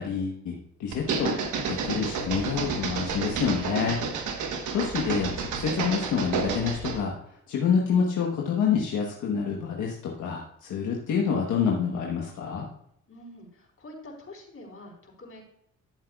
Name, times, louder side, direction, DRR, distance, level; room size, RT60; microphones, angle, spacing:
voice 1, 0.0-1.3 1.6-4.0 4.7-7.1 7.5-12.7, left 6 dB, 80° left, -1 dB, 1.2 m, -27 dB
sound 1, 0.9-7.1, right 5 dB, 80° right, 1.2 m, -30 dB
voice 2, 13.1-15.4, left 1 dB, 50° left, 1 dB, 4.1 m, -46 dB
14.0 x 7.5 x 2.4 m, 0.72 s
supercardioid pair, 50°, 30 cm